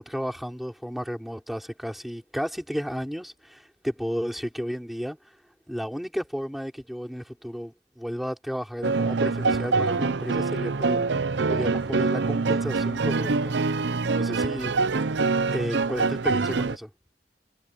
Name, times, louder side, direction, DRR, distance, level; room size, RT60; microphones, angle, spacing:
voice 1, 0.0-5.2 5.7-11.1 11.5-13.5 14.1-14.7 15.5-16.9, equal, ahead, 5.7 m, -33 dB
sound 1, 8.8-16.8, right 4 dB, 80° right, 0.7 m, -25 dB
head